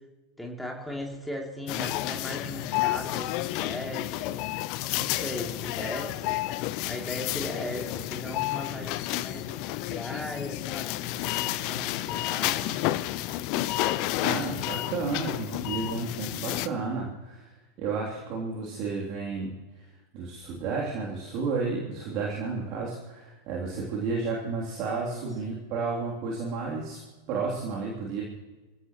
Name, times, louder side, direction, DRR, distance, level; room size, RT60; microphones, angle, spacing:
voice 1, 0.4-4.4 4.9-12.8 25.1-25.3, left 1 dB, 5° left, 0 dB, 3.0 m, -38 dB
sound 1, 1.7-16.7, left 16 dB, 45° left, 0.6 m, -31 dB
voice 2, 14.2-19.8 20.1-27.0 27.3-28.2, right 4 dB, 40° right, -3 dB, 3.2 m, -32 dB
28.0 x 15.5 x 3.1 m, 1.2 s
figure-of-eight pair, 90°, 0 cm